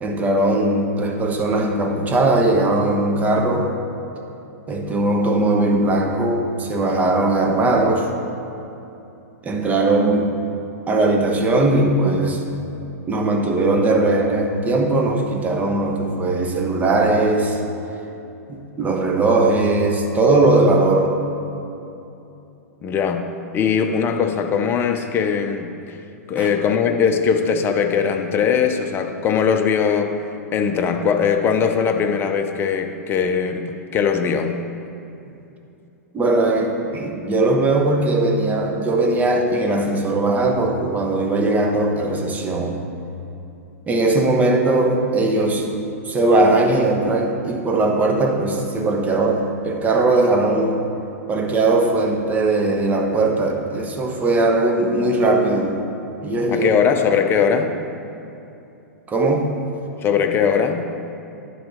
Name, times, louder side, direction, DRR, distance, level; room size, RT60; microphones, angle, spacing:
voice 1, 0.0-3.7 4.7-8.1 9.4-10.4 10.9-12.5 13.1-17.6 18.5-21.2 26.4-26.5 36.1-42.9 43.9-45.7 46.0-50.8 51.3-55.8 56.2-56.7 59.1-59.7, right 2 dB, 20° right, 2 dB, 1.0 m, -19 dB
voice 2, 22.8-23.3 23.5-26.0 26.3-30.1 30.5-34.6 56.5-57.7 60.0-60.9, left 6 dB, 25° left, 5 dB, 0.7 m, -20 dB
10.5 x 4.1 x 6.4 m, 2.8 s
hypercardioid pair, 110°, 9 cm